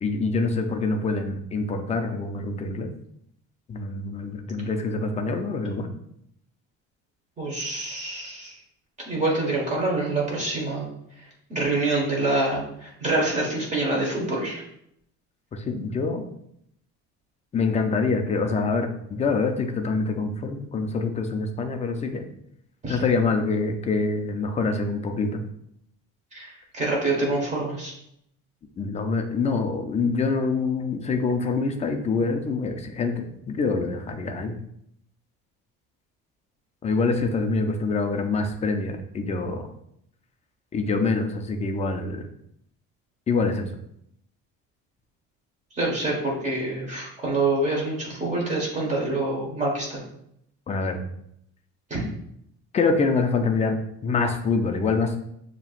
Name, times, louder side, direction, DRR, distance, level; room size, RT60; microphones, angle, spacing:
voice 1, 0.0-2.9 3.7-5.9 15.5-16.2 17.5-22.2 22.9-25.4 28.8-34.6 36.8-39.7 40.7-42.3 43.3-43.7 50.7-51.0 52.7-53.7 54.0-55.2, left 4 dB, 20° left, 5 dB, 0.4 m, -25 dB
voice 2, 7.4-8.5 9.0-10.9 11.5-14.6 22.8-23.0 26.3-27.9 45.8-50.0 51.9-52.0, right 2 dB, 25° right, -2 dB, 1.4 m, -26 dB
7.0 x 2.9 x 2.4 m, 0.74 s
cardioid pair, 155°, 30 cm